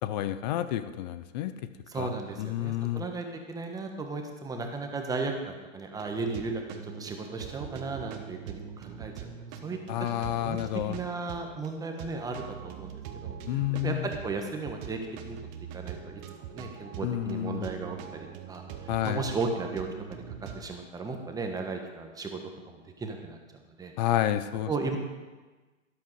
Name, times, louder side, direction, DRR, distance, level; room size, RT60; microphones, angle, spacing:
voice 1, 0.0-1.5 2.0-2.1 2.4-3.0 9.9-11.0 13.5-14.1 17.0-17.7 18.9-19.2 24.0-24.7, left 12 dB, 35° left, 12 dB, 0.7 m, -30 dB
voice 2, 1.9-9.8 10.4-10.6 10.9-15.4 15.7-16.2 16.5-20.2 20.5-22.4 22.7-23.4 23.8-23.9 24.7-25.0, right 3 dB, 10° right, 3 dB, 1.3 m, -35 dB
sound 1, 5.9-20.7, right 8 dB, 30° right, 1.3 m, -43 dB
13.0 x 11.5 x 4.8 m, 1.3 s
hypercardioid pair, 125°, 40 cm